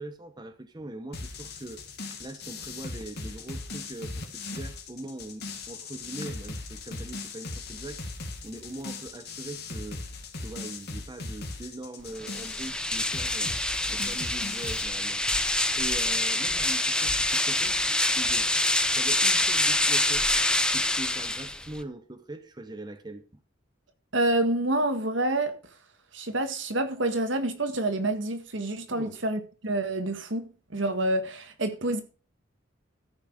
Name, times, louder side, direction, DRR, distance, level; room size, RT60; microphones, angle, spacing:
voice 1, 0.0-8.0 8.4-10.0 10.4-13.6 13.9-15.2 15.7-18.5 19.0-20.3 20.7-23.2 28.9-29.2, right 2 dB, 20° right, 0.8 m, -41 dB
sound 1, 1.1-14.8, left 3 dB, 55° left, 2.0 m, -39 dB
sound 2, 12.1-21.8, left 1 dB, 5° left, 0.7 m, -26 dB
voice 2, 24.1-25.5 26.1-32.0, right 1 dB, 65° right, 1.7 m, -28 dB
13.5 x 6.1 x 5.1 m
head